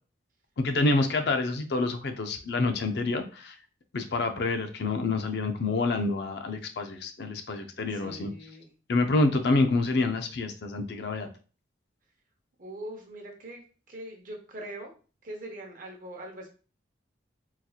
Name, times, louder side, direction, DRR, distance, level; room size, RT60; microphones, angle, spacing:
voice 1, 0.6-3.6 3.9-8.3 8.9-11.3, left 3 dB, 60° left, 6 dB, 0.5 m, -27 dB
voice 2, 7.9-8.7 12.6-13.6 13.9-14.9 15.2-16.5, right 1 dB, 45° right, 2 dB, 0.8 m, -42 dB
3.9 x 2.8 x 2.3 m, 0.36 s
head